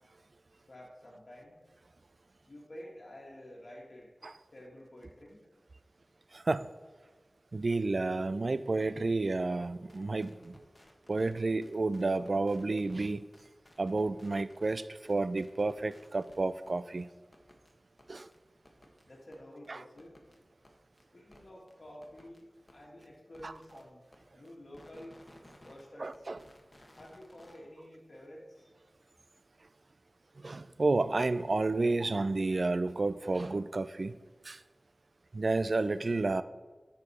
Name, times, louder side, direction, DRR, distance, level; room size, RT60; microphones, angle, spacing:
voice 1, 0.7-1.6 2.5-4.1 4.5-5.4 19.0-20.3 21.1-24.0 24.3-25.1 25.6-26.3 27.0-28.7, left 1 dB, 60° left, 1.5 m, -50 dB
voice 2, 6.3-6.7 7.5-10.6 11.1-13.2 13.8-17.1 18.1-18.3 19.7-19.8 23.4-23.5 26.0-26.4 30.4-34.2 34.4-34.6 35.3-36.4, right 3 dB, 60° right, 0.3 m, -31 dB
sound 1, 9.9-11.3 11.6-13.1 13.3-14.8 15.0-16.4 16.7-16.8 17.0-17.1 17.3-17.7 18.0-18.1 18.3-18.4 18.6-19.0 19.3-19.4 19.6-19.7 20.0-20.4 20.6-20.7 21.0-21.1 21.3-21.4 21.7-21.8 22.0-22.4 22.7-22.8 23.0-23.1 23.3-23.8 24.1-24.2 24.5-25.9 26.1-27.6, left 1 dB, 35° left, 1.1 m, -58 dB
9.9 x 4.5 x 4.2 m
wide cardioid pair, 45°, 0 cm